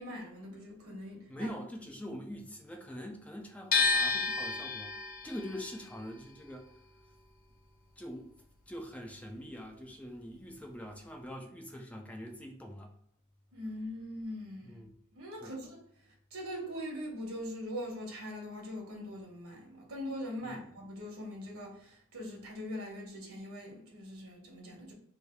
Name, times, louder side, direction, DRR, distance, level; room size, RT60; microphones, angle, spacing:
voice 1, 0.0-1.5 13.5-14.8 15.1-15.8 16.3-24.9, equal, 70° right, 1.2 m, -42 dB
voice 2, 1.3-6.7 8.0-8.3 8.7-12.9 14.6-14.9 15.4-15.6 20.4-20.6, equal, 5° left, 0.4 m, -44 dB
sound 1, 3.7-9.7 10.0-11.3, left 4 dB, 45° left, 0.7 m, -33 dB
3.2 x 2.6 x 4.5 m
head